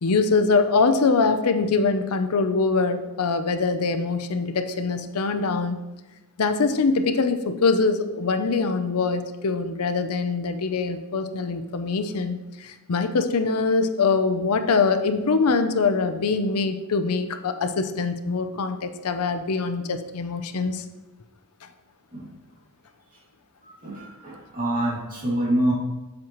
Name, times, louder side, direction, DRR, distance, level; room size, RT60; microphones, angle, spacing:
voice 1, 0.0-5.8 6.4-20.8, left 4 dB, 85° left, 8 dB, 0.6 m, -23 dB
voice 2, 23.6-25.7, right 1 dB, 40° right, -5 dB, 2.4 m, -26 dB
7.4 x 7.2 x 3.1 m, 1.0 s
head